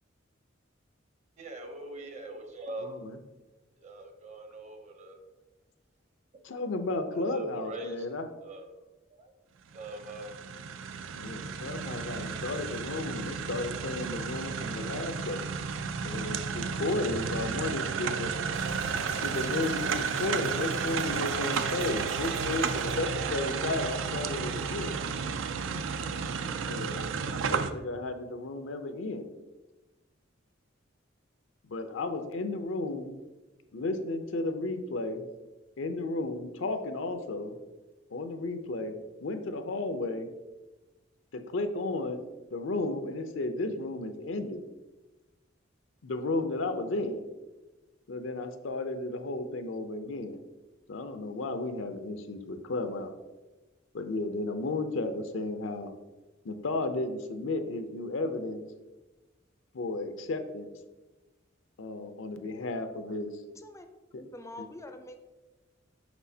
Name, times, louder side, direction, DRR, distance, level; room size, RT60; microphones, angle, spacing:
voice 1, 1.4-2.9 3.8-5.2 7.1-8.1 8.4-8.7 9.1-9.3 9.7-10.4, right 2 dB, 35° right, 5 dB, 0.7 m, -42 dB
voice 2, 2.8-3.2 6.4-8.3 11.1-15.4 16.0-18.4 19.2-25.0 26.7-27.0 27.3-29.3 31.6-33.1 33.7-35.2 35.8-37.6 38.1-39.0 39.2-40.3 41.3-42.2 42.5-44.6 46.0-47.2 48.1-50.4 50.9-53.2 53.9-55.9 56.4-58.6 59.7-60.7 61.8-63.4 64.1-64.2, left 2 dB, 75° left, 8 dB, 0.6 m, -33 dB
sound 1, 9.7-27.7, right 6 dB, 80° right, 0.4 m, -32 dB
sound 2, 18.5-22.9, right 2 dB, 60° right, 1.5 m, -43 dB
voice 3, 63.6-63.9 64.2-65.2, left 2 dB, 15° left, 7 dB, 0.4 m, -45 dB
6.1 x 5.7 x 2.8 m, 1.2 s
head